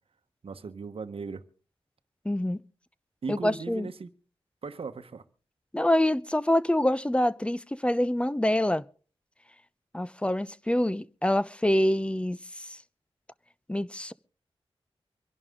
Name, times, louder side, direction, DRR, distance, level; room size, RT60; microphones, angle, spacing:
voice 1, 0.4-1.4 3.2-4.1 4.6-5.2, right 5 dB, 65° right, 1.1 m, -37 dB
voice 2, 2.2-2.6 3.3-3.9 5.7-8.8 9.9-12.8 13.7-14.1, left 1 dB, 10° left, 0.6 m, -26 dB
25.5 x 11.0 x 3.7 m
wide cardioid pair, 75°, 10 cm